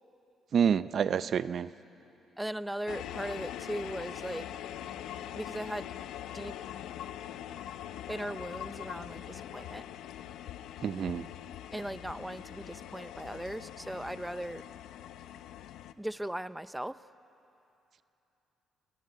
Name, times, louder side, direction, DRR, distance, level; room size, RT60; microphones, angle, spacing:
voice 1, 0.5-1.7 10.8-11.3, right 7 dB, 55° right, 15 dB, 0.5 m, -28 dB
voice 2, 2.4-4.5 5.3-5.9 6.3-6.5 8.1-9.8 11.7-14.6 16.0-17.0, right 1 dB, 5° right, 14 dB, 0.6 m, -38 dB
sound 1, 2.9-15.9, left 11 dB, 85° left, 0.8 m, -43 dB
28.0 x 20.5 x 9.5 m, 3.0 s
cardioid pair, 90°, 0 cm